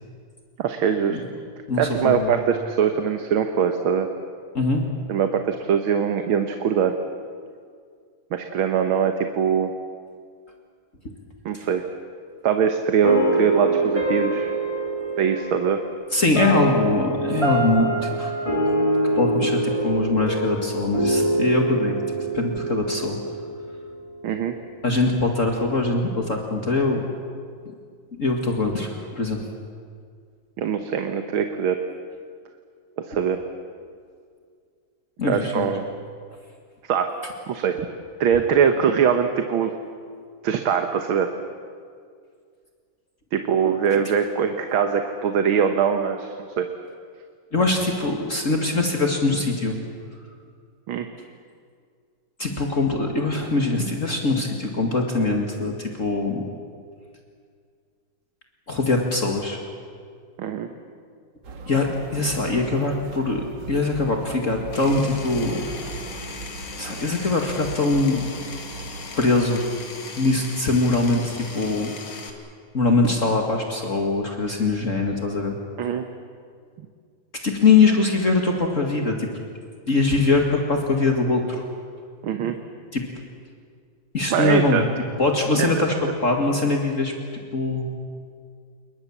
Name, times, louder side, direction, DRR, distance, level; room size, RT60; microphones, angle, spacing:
voice 1, 0.6-1.2 1.8-4.1 5.1-6.9 8.3-9.7 11.5-11.8 12.4-14.5 15.2-15.8 24.2-24.5 30.6-31.8 33.1-33.4 35.3-35.8 36.8-37.1 37.5-37.8 38.2-39.7 40.4-41.3 43.3-46.7 50.9-51.1 60.4-60.7 75.8-76.0 82.2-82.6 84.3-84.8 85.6-85.9, right 7 dB, 90° right, 6 dB, 2.0 m, -22 dB
voice 2, 1.7-2.4 4.5-4.8 16.1-18.3 19.1-22.0 22.3-23.2 24.8-27.0 28.2-29.5 35.2-35.7 47.5-49.8 52.4-56.4 58.7-59.6 61.7-65.7 66.8-68.2 69.2-69.6 70.2-71.9 72.7-75.6 77.4-79.3 79.9-81.6 82.9-83.0 84.1-84.8 85.2-87.9, left 3 dB, 40° left, 2 dB, 2.3 m, -22 dB
sound 1, 13.0-24.1, right 1 dB, 15° left, 3.6 m, -25 dB
sound 2, 61.4-69.4, right 4 dB, 60° right, 2.4 m, -39 dB
Power tool, 64.7-72.3, left 4 dB, 85° left, 3.1 m, -38 dB
28.5 x 22.0 x 7.3 m, 2.2 s
omnidirectional pair, 2.2 m